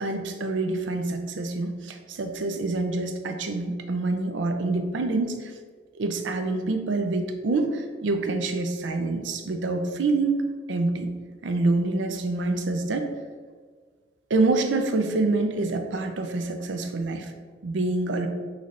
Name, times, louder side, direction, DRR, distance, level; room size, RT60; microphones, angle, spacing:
voice 1, 0.0-5.5 6.0-11.1 11.4-13.1 14.3-17.3 17.6-18.3, right 3 dB, 90° right, 6 dB, 0.5 m, -26 dB
5.6 x 3.2 x 2.5 m, 1.6 s
head